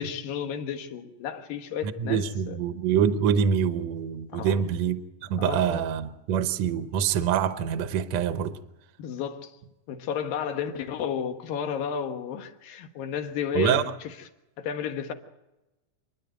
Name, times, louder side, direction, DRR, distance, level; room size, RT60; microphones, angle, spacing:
voice 1, 0.0-2.6 4.3-4.7 5.4-5.8 9.0-9.5 9.9-14.1 14.6-15.1, left 8 dB, 75° left, 3.1 m, -32 dB
voice 2, 1.8-8.6 13.5-13.9, right 8 dB, 70° right, 1.7 m, -25 dB
27.5 x 10.5 x 9.2 m
omnidirectional pair, 4.2 m